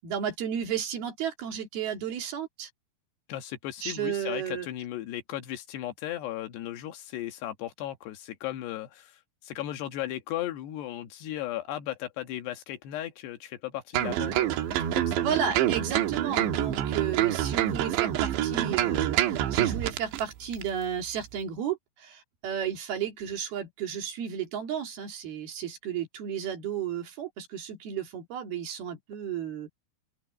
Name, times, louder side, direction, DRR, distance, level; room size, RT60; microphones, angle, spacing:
voice 1, 0.0-2.7 3.8-4.7 15.2-29.8, right 8 dB, 65° right, 4.1 m, -33 dB
voice 2, 3.3-9.2 9.4-15.2, left 13 dB, 75° left, 3.4 m, -36 dB
sound 1, 13.9-20.2 20.5-20.7, right 12 dB, 85° right, 3.5 m, -27 dB
open air
omnidirectional pair, 5.0 m